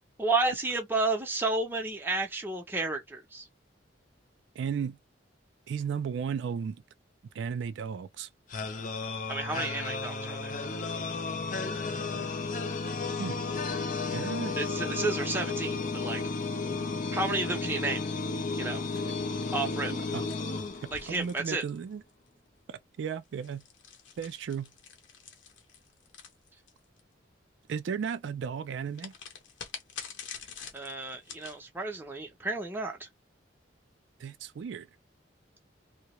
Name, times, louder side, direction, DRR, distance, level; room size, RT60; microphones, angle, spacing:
voice 1, 0.2-3.5 9.3-10.5 14.5-16.2 17.1-18.1 18.6-18.8 19.5-19.9 20.9-21.6 30.7-33.1, right 3 dB, 10° right, 0.5 m, -31 dB
voice 2, 4.6-5.0 5.7-6.8 7.3-8.3 13.2-13.4 14.1-14.6 20.1-20.2 21.1-22.0 22.7-23.6 24.2-24.7 27.7-29.1 34.2-34.9, right 6 dB, 70° right, 0.3 m, -34 dB
sound 1, 8.5-21.4, left 3 dB, 40° left, 0.4 m, -33 dB
sound 2, 20.3-22.3 23.2-27.0 28.9-31.6, left 7 dB, 75° left, 0.7 m, -46 dB
2.2 x 2.0 x 2.9 m
head